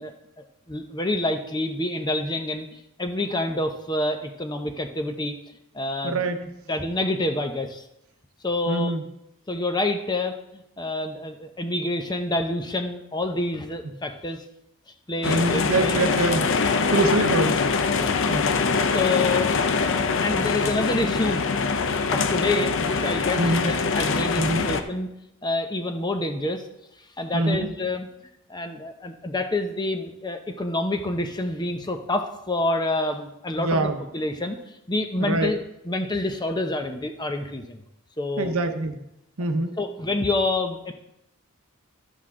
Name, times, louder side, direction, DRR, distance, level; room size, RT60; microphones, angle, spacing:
voice 1, 0.0-2.7 3.0-5.4 5.7-6.2 6.7-7.8 8.4-8.9 9.5-14.4 15.1-16.1 16.9-17.1 17.9-18.2 18.9-19.5 19.8-21.4 22.1-25.1 25.4-26.6 27.2-28.1 28.5-34.6 34.9-35.6 35.9-37.8 38.2-38.6 39.8-40.9, left 2 dB, 20° left, 5 dB, 0.7 m, -27 dB
voice 2, 6.0-6.5 8.7-9.0 15.3-16.6 16.9-17.6 18.3-18.5 23.4-23.7 24.4-24.7 27.3-27.7 33.6-34.0 35.2-35.6 38.4-39.0 39.4-39.8, right 2 dB, 70° right, 7 dB, 0.9 m, -24 dB
sound 1, 15.2-24.8, left 4 dB, 55° left, 0.6 m, -23 dB
12.0 x 8.0 x 3.8 m, 0.84 s
head